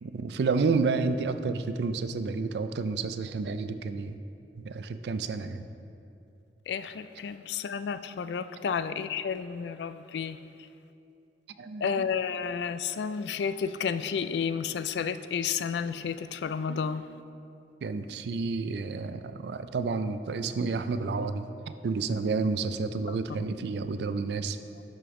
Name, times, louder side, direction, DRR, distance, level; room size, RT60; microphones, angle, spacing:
voice 1, 0.0-4.2 4.6-5.7 11.6-12.1 16.7-16.9 17.8-24.6, right 4 dB, 70° right, 11 dB, 0.4 m, -30 dB
voice 2, 6.7-10.4 11.8-17.0 23.1-23.4, left 6 dB, 75° left, 13 dB, 0.3 m, -31 dB
12.5 x 5.2 x 3.7 m, 2.7 s
head